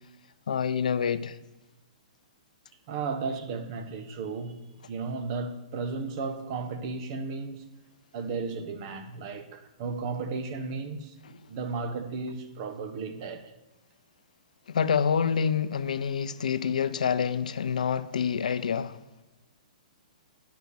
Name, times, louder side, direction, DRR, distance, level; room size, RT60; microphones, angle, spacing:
voice 1, 0.5-1.4 11.3-11.4 14.7-19.0, left 7 dB, 75° left, 0.5 m, -27 dB
voice 2, 2.9-4.6 4.9-7.6 8.1-11.1 11.5-13.5, right 4 dB, 45° right, 1.2 m, -34 dB
10.5 x 5.8 x 6.7 m
hypercardioid pair, 125°, 4 cm